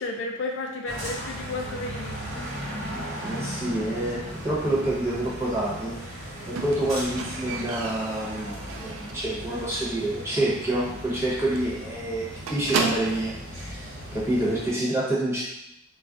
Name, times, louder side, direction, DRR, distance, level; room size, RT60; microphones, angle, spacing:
voice 1, 0.0-2.5, left 2 dB, 60° left, 2 dB, 0.3 m, -33 dB
sound 1, 0.9-14.7, equal, 70° right, 1.1 m, -37 dB
voice 2, 3.2-6.0 6.5-15.4, right 1 dB, 15° right, -7 dB, 0.8 m, -27 dB
Squeak, 6.6-9.3 9.7-10.1 10.3-10.4 10.8-10.9 11.2-11.3 11.6-13.4 14.2-14.3, right 5 dB, 90° right, 0.4 m, -33 dB
2.3 x 2.1 x 3.7 m, 0.84 s
head